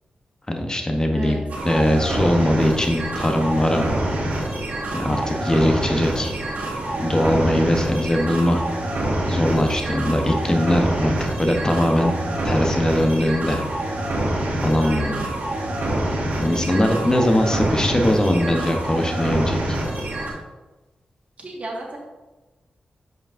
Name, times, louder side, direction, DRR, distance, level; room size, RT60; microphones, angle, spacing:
voice 1, 0.5-3.9 4.9-6.3 7.0-8.6 9.3-11.1 11.4-12.1 12.4-13.6 14.6-15.2 16.4-19.8, left 1 dB, 25° left, 3 dB, 0.9 m, -21 dB
sound 1, 1.5-20.3, right 1 dB, 75° right, 1.8 m, -26 dB
voice 2, 14.8-15.3 16.3-17.3 21.4-22.0, right 1 dB, 50° right, -2 dB, 1.6 m, -35 dB
7.8 x 4.9 x 2.6 m, 1.1 s
cardioid pair, 60°, 3 cm